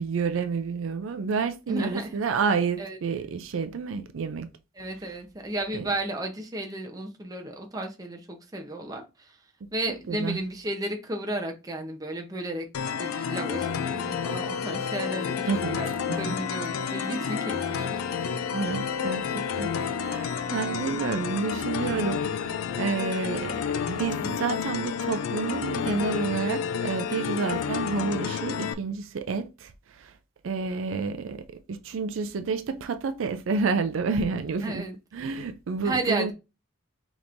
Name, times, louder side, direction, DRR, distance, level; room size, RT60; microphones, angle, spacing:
voice 1, 0.0-4.5 5.7-5.9 10.1-10.4 15.5-15.8 16.1-16.4 18.5-19.8 20.0-23.6 23.9-29.7 30.0-30.1 30.4-34.8 35.1-36.3, right 5 dB, 70° right, 0.4 m, -29 dB
voice 2, 1.7-2.1 2.8-3.0 4.8-9.3 9.7-15.9 16.2-18.3 34.6-35.0 35.8-36.3, right 1 dB, 20° right, 0.7 m, -33 dB
sound 1, 12.7-28.7, left 7 dB, 90° left, 0.4 m, -30 dB
5.1 x 3.0 x 2.5 m
head